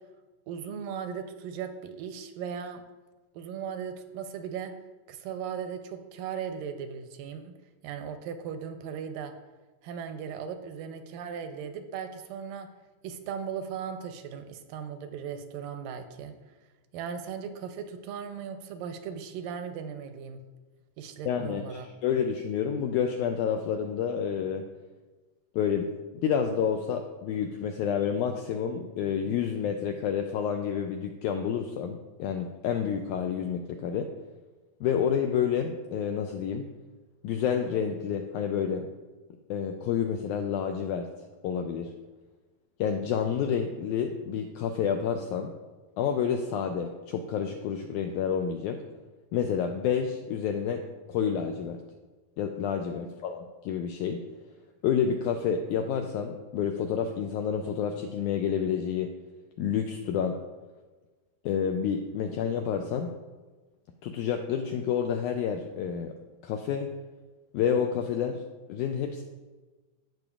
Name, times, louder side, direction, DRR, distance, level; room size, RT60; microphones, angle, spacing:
voice 1, 0.5-2.8 3.3-4.7 5.1-7.5 7.8-9.3 9.8-12.7 13.0-16.4 16.9-20.4 21.0-21.9, right 7 dB, 85° right, 7 dB, 2.2 m, -37 dB
voice 2, 21.3-24.6 25.6-34.1 34.8-36.7 37.2-38.9 39.5-41.1 41.4-41.9 42.8-45.5 46.0-48.8 49.3-50.8 51.1-51.8 52.4-54.2 54.8-59.1 59.6-60.4 61.5-63.1 64.0-66.1 66.4-66.9 67.5-68.4 68.7-69.2, left 7 dB, 85° left, 4 dB, 1.7 m, -29 dB
15.5 x 6.0 x 2.4 m, 1.3 s
omnidirectional pair, 4.0 m